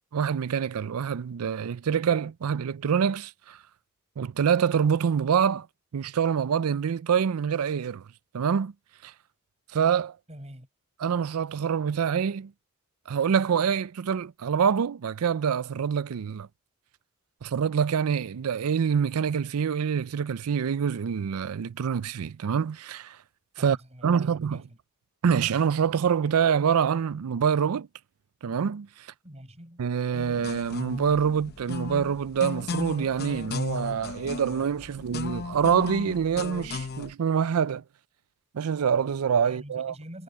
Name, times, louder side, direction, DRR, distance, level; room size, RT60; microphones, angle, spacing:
voice 1, 0.1-3.6 4.2-5.7 5.9-8.0 8.3-8.7 9.0-9.1 9.7-10.2 11.0-12.5 13.1-16.5 17.4-23.2 23.6-23.8 24.0-24.6 25.2-27.9 28.4-28.9 29.8-37.8 38.5-39.9, right 7 dB, 80° right, 0.4 m, -26 dB
voice 2, 10.3-10.7 23.6-24.8 29.2-29.8 39.4-40.2, equal, 30° right, 7.3 m, -46 dB
sound 1, 30.1-37.1, left 4 dB, 45° left, 0.8 m, -35 dB
head